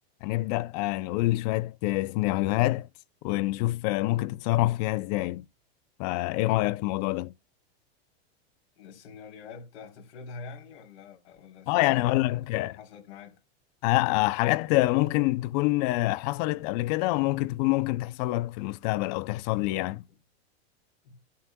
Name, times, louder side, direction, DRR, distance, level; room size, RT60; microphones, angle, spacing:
voice 1, 0.2-2.9 3.2-5.4 6.0-7.3 11.7-12.7 13.8-20.0, left 19 dB, 40° left, 0.5 m, -26 dB
voice 2, 8.8-13.4 20.1-20.2 21.0-21.2, left 5 dB, 80° left, 3.7 m, -46 dB
13.5 x 11.0 x 2.2 m
supercardioid pair, 150°, 32 cm